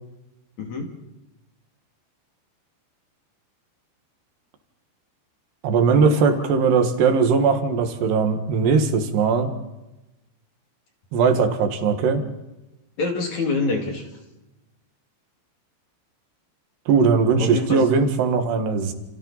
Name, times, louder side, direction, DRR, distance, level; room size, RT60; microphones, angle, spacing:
voice 1, 0.6-0.9 5.9-6.3 13.0-14.1 17.4-18.0, left 3 dB, 45° left, 2 dB, 3.3 m, -26 dB
voice 2, 5.6-9.5 11.1-12.2 16.9-18.9, right 5 dB, 65° right, 6 dB, 3.6 m, -19 dB
29.0 x 28.5 x 4.1 m, 1.0 s
omnidirectional pair, 5.5 m